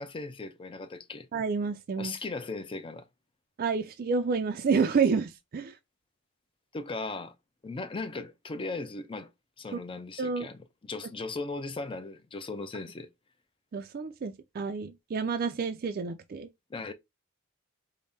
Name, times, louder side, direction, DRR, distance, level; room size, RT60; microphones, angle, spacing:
voice 1, 0.0-1.3 2.0-3.0 6.7-7.3 7.6-9.3 9.6-13.1 16.7-16.9, left 3 dB, 25° left, 0.5 m, -37 dB
voice 2, 1.3-2.1 3.6-5.8 9.7-9.8 10.2-10.5 13.7-16.5, right 5 dB, 45° right, 0.4 m, -29 dB
5.2 x 2.1 x 2.7 m
head